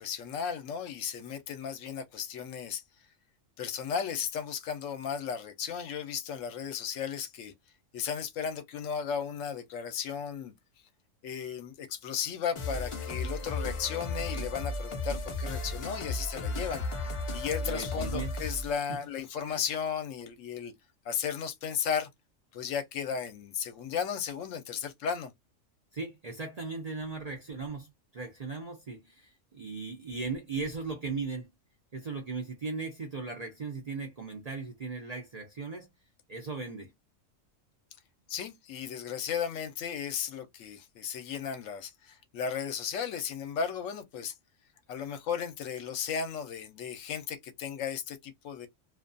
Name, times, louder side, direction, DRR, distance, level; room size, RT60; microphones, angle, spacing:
voice 1, 0.0-2.8 3.6-7.5 7.9-10.5 11.2-16.8 17.3-20.7 21.0-22.1 22.5-25.3 38.3-44.3 44.9-48.7, left 7 dB, 75° left, 0.9 m, -35 dB
sound 1, 12.6-18.8, left 2 dB, 50° left, 0.4 m, -35 dB
voice 2, 17.6-18.3 18.9-19.0 25.9-31.5 31.9-35.9 36.3-36.9, right 4 dB, 50° right, 0.5 m, -37 dB
2.4 x 2.2 x 2.5 m
omnidirectional pair, 1.3 m